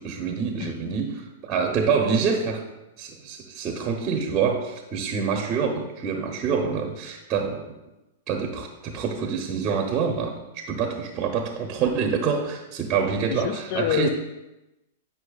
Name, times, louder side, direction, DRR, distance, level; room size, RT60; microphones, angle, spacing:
voice 1, 0.0-2.6 3.0-7.8 8.3-14.1, right 6 dB, 30° right, 3 dB, 0.9 m, -26 dB
voice 2, 13.3-14.1, left 11 dB, 55° left, 12 dB, 0.4 m, -26 dB
9.7 x 5.5 x 2.4 m, 0.99 s
hypercardioid pair, 125°, 0 cm